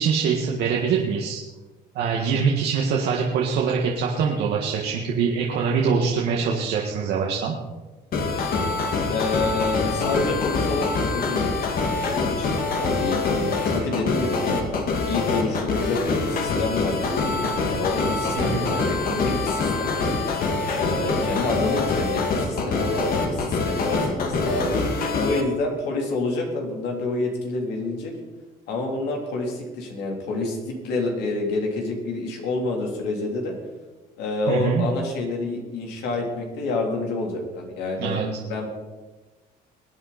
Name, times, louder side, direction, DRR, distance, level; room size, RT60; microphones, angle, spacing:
voice 1, 0.0-1.4 2.0-7.6 18.4-18.7 34.5-34.9 38.0-38.3, right 6 dB, 75° right, -1 dB, 1.8 m, -23 dB
sound 1, 8.1-25.4, left 3 dB, 60° left, 2.3 m, -25 dB
voice 2, 9.1-11.5 12.0-14.6 15.1-20.4 20.7-24.8 25.2-28.1 28.7-33.5 34.2-38.7, left 2 dB, 85° left, 0 dB, 3.5 m, -28 dB
22.0 x 9.0 x 4.3 m, 1.2 s
cardioid pair, 110°, 17 cm